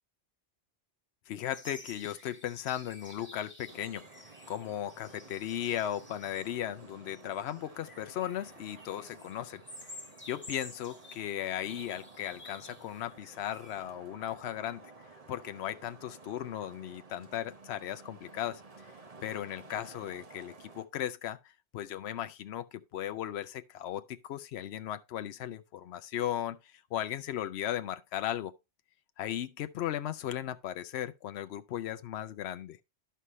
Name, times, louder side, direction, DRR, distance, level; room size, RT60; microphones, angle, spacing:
voice 1, 1.3-9.9 10.3-14.9 15.3-18.6 19.2-28.5 29.2-32.8, left 11 dB, 75° left, 0.9 m, -37 dB
sound 1, 1.5-13.8, left 1 dB, 10° left, 1.8 m, -52 dB
Traffic noise roadway noise, 3.7-20.8, right 3 dB, 35° right, 1.1 m, -54 dB
11.0 x 5.7 x 3.1 m
omnidirectional pair, 1.1 m